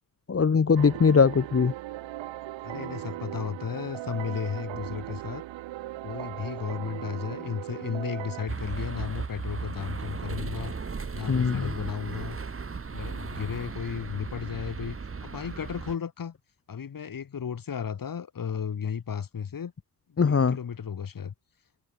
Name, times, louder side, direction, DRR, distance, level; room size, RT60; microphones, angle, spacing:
voice 1, 0.3-1.7 11.3-11.7 20.2-20.6, left 5 dB, 30° left, 2.1 m, -21 dB
sound 1, 0.8-8.5, right 15 dB, 85° right, 7.5 m, -38 dB
voice 2, 2.6-5.4 6.0-10.7 11.1-12.4 12.9-16.3 16.7-19.7 20.1-21.3, left 7 dB, 50° left, 5.5 m, -34 dB
sound 2, 8.5-16.0, right 5 dB, 30° right, 3.0 m, -36 dB
supercardioid pair, 75°, 44 cm